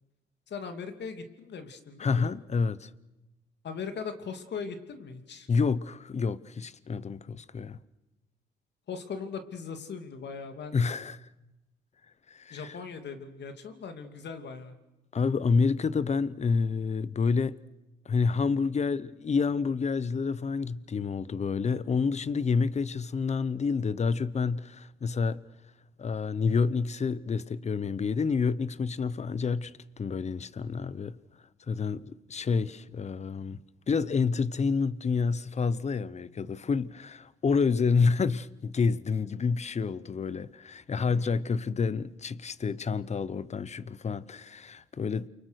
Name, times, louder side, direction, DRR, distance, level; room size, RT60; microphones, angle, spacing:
voice 1, 0.5-2.3 3.6-5.5 8.9-10.8 12.5-14.8 41.0-41.5, left 5 dB, 60° left, 2.7 m, -39 dB
voice 2, 2.0-2.9 5.5-7.8 10.7-11.2 12.3-12.7 15.1-17.6 18.1-25.4 26.0-31.2 31.7-33.6 33.9-45.3, left 5 dB, 35° left, 0.9 m, -28 dB
29.0 x 24.0 x 6.5 m
cardioid pair, 90°, 20 cm